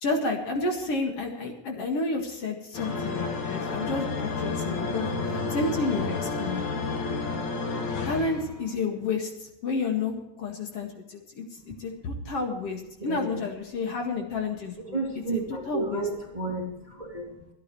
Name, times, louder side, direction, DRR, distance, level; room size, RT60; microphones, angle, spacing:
voice 1, 0.0-6.6 8.0-11.4 11.8-15.0 15.3-15.4 15.7-16.0, left 3 dB, 55° left, 2 dB, 2.7 m, -30 dB
sound 1, 2.7-8.8, left 3 dB, 75° left, 3.5 m, -30 dB
voice 2, 11.6-12.3 13.0-13.4 14.8-17.5, right 2 dB, 15° right, 0 dB, 2.4 m, -33 dB
25.5 x 10.0 x 3.1 m, 0.89 s
omnidirectional pair, 3.3 m